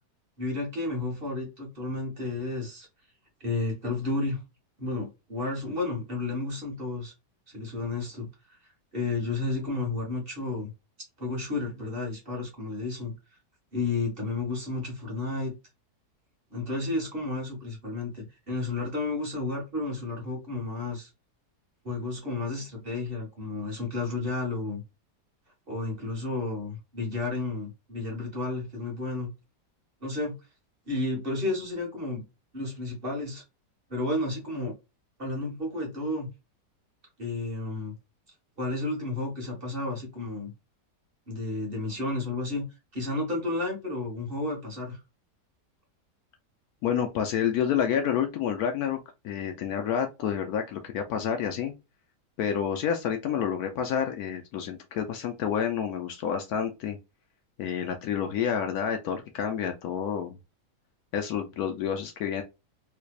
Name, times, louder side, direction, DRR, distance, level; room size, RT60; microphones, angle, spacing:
voice 1, 0.4-2.9 3.4-4.4 4.8-7.1 7.5-8.3 8.9-10.7 11.2-13.1 13.7-15.5 16.5-21.1 21.8-24.8 25.7-29.3 30.0-30.3 30.9-32.2 32.5-33.4 33.9-34.7 35.2-36.3 37.2-37.9 38.6-40.5 41.3-42.7 42.9-45.0, left 2 dB, 35° right, 1.4 m, -32 dB
voice 2, 46.8-49.0 49.2-51.7 52.4-57.0 57.6-60.4 61.1-62.4, left 8 dB, 70° left, 1.0 m, -29 dB
3.3 x 3.2 x 2.3 m
omnidirectional pair, 1.8 m